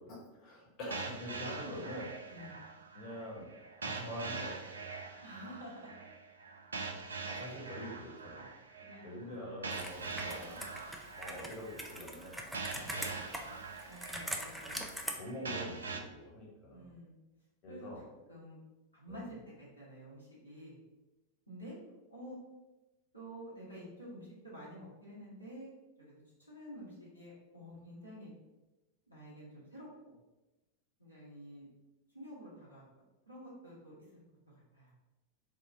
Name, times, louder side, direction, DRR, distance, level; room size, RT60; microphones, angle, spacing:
voice 1, 0.0-2.1 2.9-3.5 3.8-4.8 7.2-8.5 9.0-10.7 11.2-12.4 12.7-13.5 14.7-17.0 17.6-18.0 19.1-19.4, equal, 40° left, -3 dB, 1.0 m, -45 dB
sound 1, 0.9-16.0, right 4 dB, 70° right, 0.3 m, -44 dB
voice 2, 5.2-5.9 8.8-9.5 12.7-13.1 13.9-14.8 16.7-17.1 17.7-17.9 18.3-18.6 18.9-20.8 21.5-21.8 22.1-22.4 23.1-25.7 26.0-26.2 26.5-28.3 29.1-29.9 31.0-31.7 32.1-32.8 33.3-33.9 34.7-34.9, equal, 90° left, -8 dB, 1.3 m, -49 dB
Computer keyboard, 9.7-15.1, equal, 5° right, 0.4 m, -43 dB
3.7 x 2.1 x 3.6 m, 1.1 s
figure-of-eight pair, 90°, 0 cm